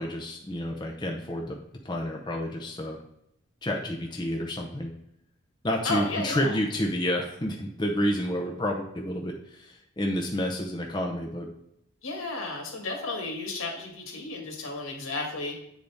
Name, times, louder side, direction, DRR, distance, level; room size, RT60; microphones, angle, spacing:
voice 1, 0.0-1.6 1.8-3.0 3.6-4.9 5.6-11.5, equal, 20° left, 1 dB, 0.6 m, -29 dB
voice 2, 5.8-6.5 12.0-15.6, left 3 dB, 85° left, 0 dB, 1.8 m, -33 dB
8.2 x 3.9 x 3.5 m, 0.79 s
head